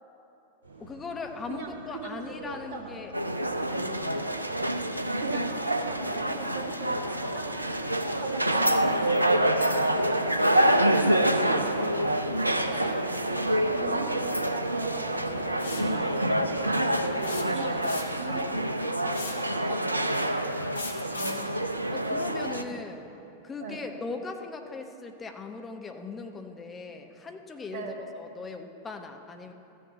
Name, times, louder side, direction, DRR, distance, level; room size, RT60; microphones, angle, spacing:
sound 1, 0.6-18.5, right 4 dB, 70° right, 2.7 m, -50 dB
voice 1, 0.8-3.1 3.7-4.2 15.4-15.7 17.4-17.8 21.2-23.0 23.4-29.5, left 4 dB, 20° left, 4 dB, 0.9 m, -40 dB
voice 2, 1.5-3.1 4.1-4.3 5.2-10.6 11.2-13.3 13.7-15.2 15.6-17.8 18.2-20.8 22.6-22.8 23.6-23.8 27.7-27.9, right 3 dB, 55° right, 1 dB, 1.7 m, -40 dB
sound 2, 3.1-22.6, right 1 dB, 85° right, 0.5 m, -27 dB
sound 3, 15.6-15.9 17.2-18.3 19.1-19.5 20.8-21.5, left 3 dB, 75° left, 1.0 m, -38 dB
14.0 x 7.0 x 7.0 m, 2.9 s
figure-of-eight pair, 90°, 0 cm